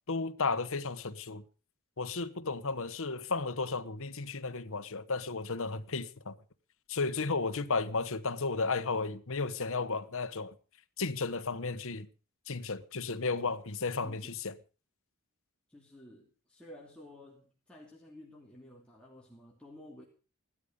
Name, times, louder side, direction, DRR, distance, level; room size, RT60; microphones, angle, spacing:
voice 1, 0.1-1.4 2.0-6.4 6.9-10.5 11.0-12.1 12.5-14.5, left 4 dB, 65° left, 1.2 m, -33 dB
voice 2, 14.0-14.4 15.7-20.0, left 1 dB, 5° left, 2.7 m, -53 dB
17.0 x 12.5 x 5.3 m
head